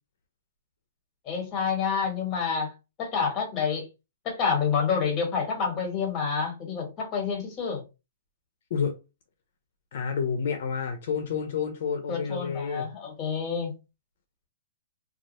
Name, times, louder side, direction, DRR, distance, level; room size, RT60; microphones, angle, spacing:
voice 1, 1.2-2.7 3.0-3.9 4.2-7.8 12.1-13.7, left 6 dB, 20° left, 1.0 m, -28 dB
voice 2, 9.9-12.9, left 6 dB, 55° left, 0.5 m, -29 dB
2.3 x 2.1 x 2.9 m
hypercardioid pair, 155°, 0 cm